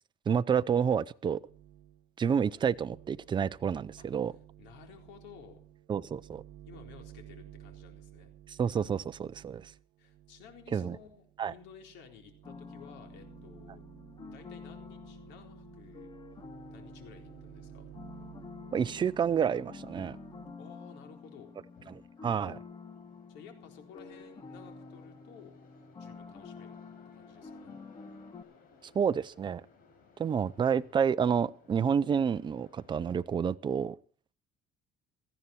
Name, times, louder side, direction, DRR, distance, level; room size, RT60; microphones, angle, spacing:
voice 1, 0.3-1.4 2.2-4.3 5.9-6.4 8.6-9.7 10.7-11.0 11.4-11.5 18.7-20.2 21.9-22.6 28.9-29.6 30.2-34.0, right 7 dB, 25° right, 0.6 m, -29 dB
sound 1, 1.5-2.1 2.4-20.5, right 13 dB, 75° right, 1.2 m, -53 dB
voice 2, 4.0-5.6 6.7-8.3 10.0-13.8 14.2-16.1 16.7-17.9 20.6-21.5 23.3-25.6 26.0-26.8 27.1-27.7 30.5-30.9, left 7 dB, 80° left, 4.0 m, -54 dB
sound 2, 12.4-28.4, left 4 dB, 25° left, 1.5 m, -49 dB
sound 3, 16.3-33.2, left 4 dB, 50° left, 6.2 m, -62 dB
18.0 x 14.5 x 4.4 m
cardioid pair, 140°, 18 cm